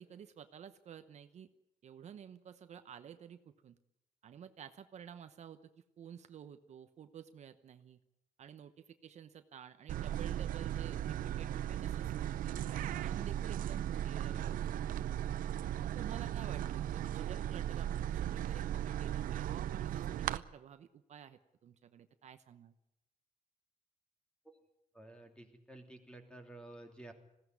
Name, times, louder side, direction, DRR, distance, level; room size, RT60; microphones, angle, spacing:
voice 1, 0.0-1.5 1.8-3.8 4.2-5.7 6.0-8.0 8.4-15.1 15.9-22.7, right 8 dB, 55° right, 9 dB, 1.0 m, -52 dB
sound 1, 9.9-20.4, right 11 dB, 75° right, 0.7 m, -37 dB
voice 2, 24.9-27.1, right 2 dB, 5° left, 4 dB, 3.1 m, -52 dB
20.5 x 16.5 x 9.5 m, 0.86 s
cardioid pair, 145°, 14 cm